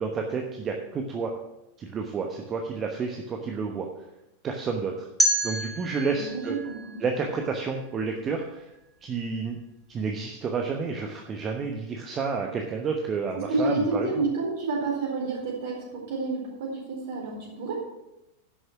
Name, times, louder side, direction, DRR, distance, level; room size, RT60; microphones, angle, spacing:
voice 1, 0.0-1.3 1.8-3.9 4.4-5.1 5.4-6.6 7.0-8.7 9.0-9.6 9.9-14.1, right 5 dB, 25° right, 3 dB, 1.0 m, -30 dB
sound 1, 5.2-8.1, equal, 5° right, 1.6 m, -29 dB
voice 2, 6.1-7.0 13.5-17.7, right 3 dB, 50° right, -2 dB, 4.2 m, -29 dB
11.0 x 6.5 x 6.0 m, 0.90 s
figure-of-eight pair, 90°, 0 cm